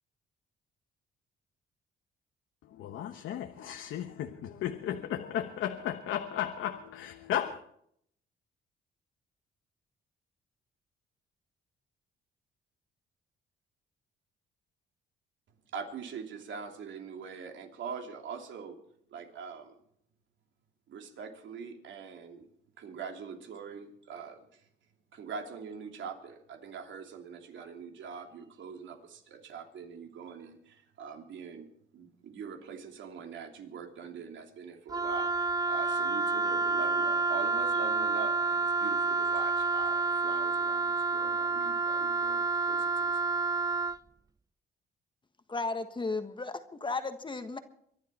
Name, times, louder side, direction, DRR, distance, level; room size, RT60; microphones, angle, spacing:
voice 1, 2.8-7.6, left 10 dB, 80° left, 1.2 m, -35 dB
voice 2, 15.7-18.8 19.1-19.8 20.9-22.5 22.8-24.6 25.1-31.7 31.9-43.3, right 6 dB, 70° right, 2.9 m, -43 dB
Wind instrument woodwind instrument, 34.9-44.0, right 3 dB, 20° right, 0.5 m, -29 dB
voice 3, 45.5-47.6, left 3 dB, 25° left, 1.5 m, -34 dB
24.0 x 11.0 x 4.4 m
cardioid pair, 90°, 20 cm